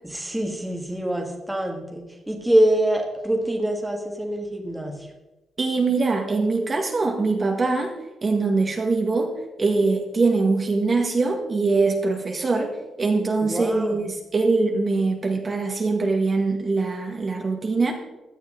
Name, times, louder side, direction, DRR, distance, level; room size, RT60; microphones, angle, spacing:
voice 1, 0.1-5.1 13.4-14.0, right 1 dB, 5° right, 2 dB, 1.7 m, -25 dB
voice 2, 5.6-7.9 8.2-17.9, right 3 dB, 30° right, 2 dB, 1.5 m, -23 dB
16.0 x 12.0 x 3.8 m, 1.0 s
wide cardioid pair, 160°, 0 cm